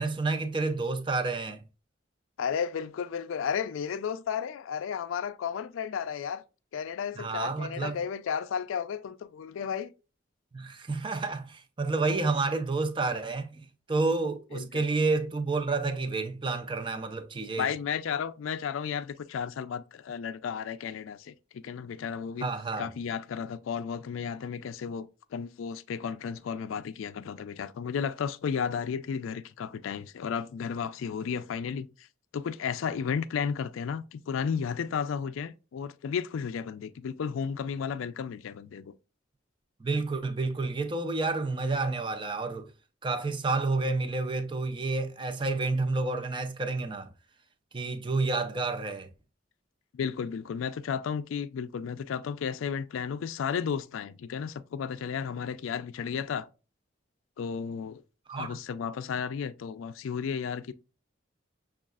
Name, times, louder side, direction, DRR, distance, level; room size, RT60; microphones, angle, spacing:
voice 1, 0.0-1.6 7.2-8.0 10.5-17.7 22.4-22.9 39.8-42.7 43.0-47.1 47.7-49.1 58.3-58.6, right 3 dB, 25° right, 0.4 m, -30 dB
voice 2, 2.4-6.4 6.7-9.9 14.5-14.8 17.6-22.5 22.8-32.1 32.3-38.9 49.9-56.5 57.4-58.0 58.3-60.7, left 7 dB, 85° left, 0.3 m, -33 dB
6.2 x 2.3 x 2.3 m
head